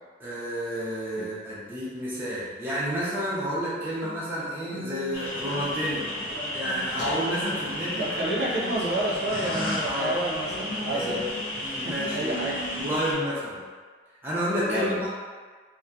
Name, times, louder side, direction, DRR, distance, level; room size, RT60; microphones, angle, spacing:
voice 1, 0.2-6.1 6.5-8.3 9.8-10.1 10.9-11.3 11.7-12.3 12.8-13.6 14.2-15.1, equal, 10° right, -9 dB, 0.5 m, -30 dB
Guitar, 3.5-12.9, left 1 dB, 80° left, 0.5 m, -39 dB
sound 1, 5.1-13.1, left 1 dB, 30° left, 0.9 m, -33 dB
voice 2, 7.9-11.2 11.8-12.6 14.6-15.1, right 1 dB, 65° right, -6 dB, 0.5 m, -29 dB
2.6 x 2.1 x 2.2 m, 1.5 s
head